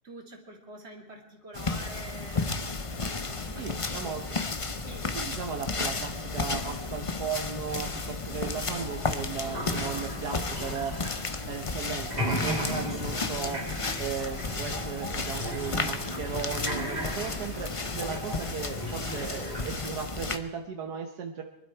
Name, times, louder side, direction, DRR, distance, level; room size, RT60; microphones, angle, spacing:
voice 1, 0.0-3.8 4.0-4.4 4.8-5.1 8.4-8.6 19.2-19.3, right 1 dB, 40° right, 1 dB, 2.9 m, -47 dB
sound 1, 1.5-20.4, left 3 dB, 30° left, 0.7 m, -33 dB
voice 2, 3.6-4.4 5.1-11.0 11.5-13.6 14.0-21.4, right 6 dB, 80° right, 3 dB, 1.6 m, -36 dB
sound 2, 8.8-11.7 12.0-19.9, equal, 25° right, 3.1 m, -37 dB
23.5 x 12.0 x 4.5 m, 0.98 s
omnidirectional pair, 1.7 m